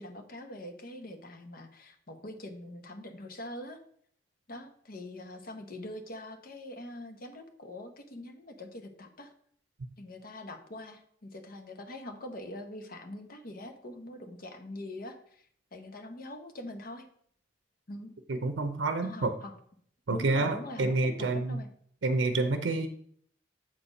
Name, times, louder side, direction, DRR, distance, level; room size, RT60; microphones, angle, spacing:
voice 1, 0.0-3.8 4.5-9.3 10.0-15.5 15.7-17.1 17.9-18.1 19.0-19.5 20.1-21.7, left 1 dB, 55° left, 6 dB, 0.9 m, -43 dB
voice 2, 18.3-19.3 20.1-21.6 22.0-22.9, right 3 dB, 85° right, 7 dB, 0.6 m, -28 dB
7.6 x 4.2 x 5.0 m, 0.63 s
head